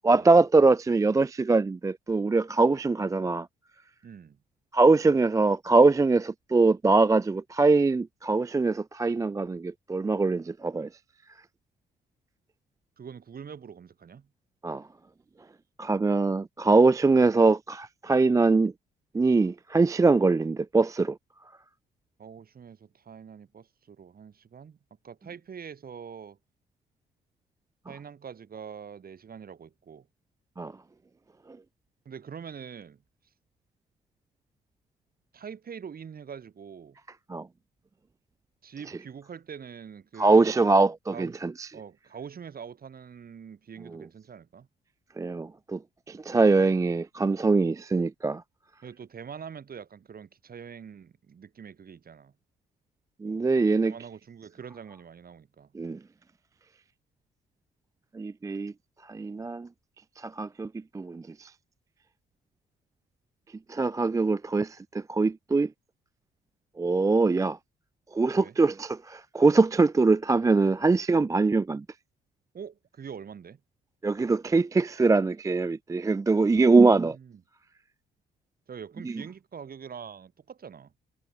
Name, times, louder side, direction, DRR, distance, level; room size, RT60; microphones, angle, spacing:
voice 1, 0.0-3.5 4.7-10.9 14.6-14.8 15.8-18.7 19.1-21.2 30.6-30.7 37.3-37.5 40.2-41.7 45.2-45.8 46.1-48.4 53.2-53.9 55.7-56.0 58.1-58.7 59.1-59.7 60.2-60.7 60.9-61.5 63.7-65.7 66.8-67.6 68.1-71.8 74.0-77.2, right 3 dB, 15° right, 0.4 m, -23 dB
voice 2, 4.0-4.4 13.0-14.3 22.2-24.8 25.0-26.4 27.9-30.1 32.0-33.0 35.3-37.0 38.6-40.7 41.1-41.4 41.7-44.7 48.8-52.3 53.8-55.7 68.3-68.6 72.5-73.6 76.5-77.4 78.7-80.9, right 7 dB, 50° right, 6.9 m, -44 dB
cardioid pair, 90°, 20 cm